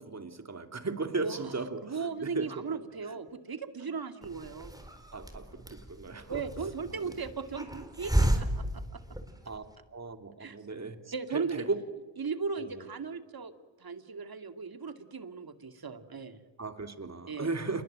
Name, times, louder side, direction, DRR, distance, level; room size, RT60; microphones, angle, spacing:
voice 1, 0.0-2.8 3.1-3.2 5.1-6.4 7.0-7.1 9.5-9.6 9.9-11.8 12.6-12.8 16.6-17.8, right 3 dB, 35° right, 7 dB, 3.0 m, -36 dB
voice 2, 1.1-4.8 6.3-9.0 10.4-10.6 11.1-11.7 12.2-13.5 13.8-16.4 17.3-17.6, right 5 dB, 50° right, 9 dB, 2.4 m, -37 dB
Hiss, 4.2-9.7, right 1 dB, 10° right, 4.2 m, -33 dB
28.0 x 21.5 x 8.9 m, 1.3 s
cardioid pair, 60°, 47 cm